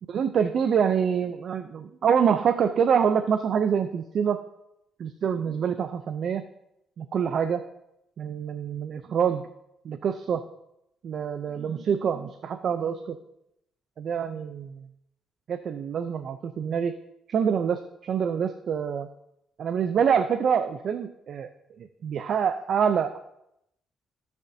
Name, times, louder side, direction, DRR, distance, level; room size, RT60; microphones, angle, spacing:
voice 1, 0.1-4.4 5.0-6.4 7.0-7.7 8.2-9.5 9.8-10.4 11.0-13.2 14.0-14.9 15.5-17.0 17.3-19.1 19.6-21.5 21.8-23.2, right 7 dB, 60° right, 9 dB, 0.5 m, -26 dB
15.5 x 6.9 x 2.8 m, 0.81 s
cardioid pair, 90°, 0 cm